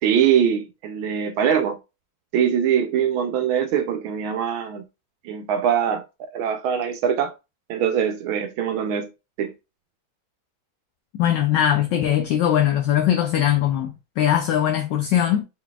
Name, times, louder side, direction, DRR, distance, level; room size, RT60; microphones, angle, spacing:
voice 1, 0.0-1.8 2.3-4.8 5.2-7.3 7.7-9.1 9.4-9.5, right 8 dB, 80° right, 1.4 m, -22 dB
voice 2, 11.1-15.4, left 10 dB, 70° left, 1.2 m, -20 dB
4.6 x 3.9 x 2.3 m
omnidirectional pair, 2.3 m